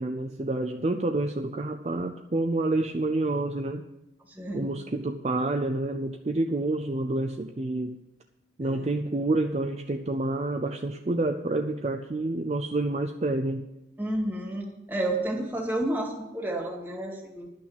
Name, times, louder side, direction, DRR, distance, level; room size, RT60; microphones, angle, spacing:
voice 1, 0.0-3.9 4.5-8.0 8.6-13.6, right 2 dB, 35° right, 5 dB, 0.5 m, -28 dB
voice 2, 4.3-4.7 8.6-8.9 14.0-17.5, right 1 dB, 10° right, -1 dB, 2.1 m, -31 dB
11.5 x 6.1 x 8.7 m, 0.92 s
head